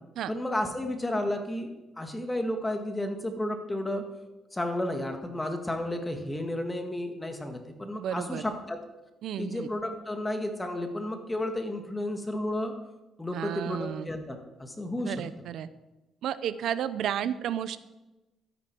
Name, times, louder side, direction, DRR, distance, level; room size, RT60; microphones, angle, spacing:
voice 1, 0.3-4.1 4.5-8.8 9.4-12.7 13.2-15.5, left 1 dB, 15° left, 5 dB, 1.8 m, -32 dB
voice 2, 8.0-8.4 9.2-9.7 13.3-14.1 15.0-15.7 16.2-17.8, right 9 dB, 75° right, 14 dB, 0.7 m, -32 dB
13.0 x 10.5 x 4.6 m, 1.0 s
cardioid pair, 90°, 0 cm